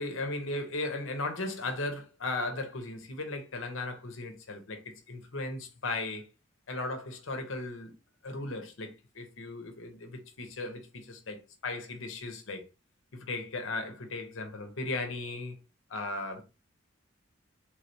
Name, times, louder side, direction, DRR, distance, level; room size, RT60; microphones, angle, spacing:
voice 1, 0.0-6.2 6.7-7.9 8.2-12.7 13.1-15.6 15.9-16.4, left 2 dB, 80° left, 0.9 m, -36 dB
3.6 x 3.2 x 2.7 m
head